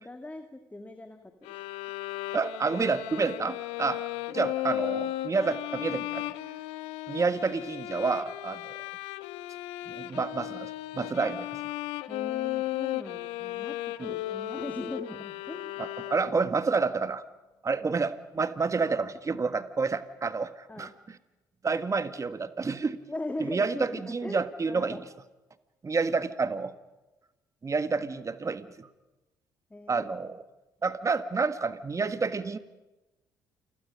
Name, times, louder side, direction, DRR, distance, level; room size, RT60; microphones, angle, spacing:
voice 1, 0.0-1.6 12.1-15.8 20.7-20.9 23.1-25.0 29.7-30.3, left 2 dB, 15° left, 6 dB, 2.1 m, -40 dB
sound 1, 1.4-16.6, left 15 dB, 75° left, 0.9 m, -35 dB
voice 2, 2.3-4.0 4.3-6.2 7.1-8.8 9.9-11.5 14.0-14.1 15.8-17.2 17.6-21.2 21.6-23.0 23.4-25.0 25.8-26.7 27.6-28.9 29.9-30.4 30.8-32.6, right 4 dB, 30° right, 11 dB, 1.5 m, -29 dB
28.5 x 24.0 x 5.3 m, 1.1 s
hypercardioid pair, 50°, 10 cm